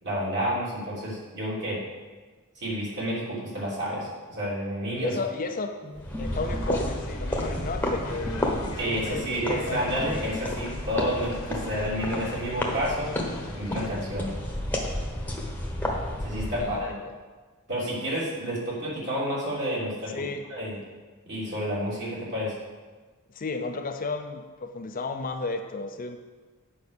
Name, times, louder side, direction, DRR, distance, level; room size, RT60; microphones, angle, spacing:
voice 1, 0.0-1.8 2.6-5.1 8.8-13.1 13.5-14.3 16.2-16.8 17.7-20.2 20.5-20.8 21.2-22.5, equal, 50° right, -6 dB, 3.2 m, -30 dB
voice 2, 5.0-5.8 6.2-9.8 16.5-17.1 20.1-20.5 23.3-26.2, left 3 dB, 40° left, 6 dB, 0.5 m, -33 dB
sound 1, 5.8-10.5 10.8-11.6, equal, 30° right, 1.9 m, -41 dB
sound 2, 6.0-16.9, left 1 dB, 10° left, 1.1 m, -32 dB
sound 3, 6.2-13.9, left 2 dB, 65° left, 1.1 m, -43 dB
8.8 x 5.2 x 6.6 m, 1.3 s
head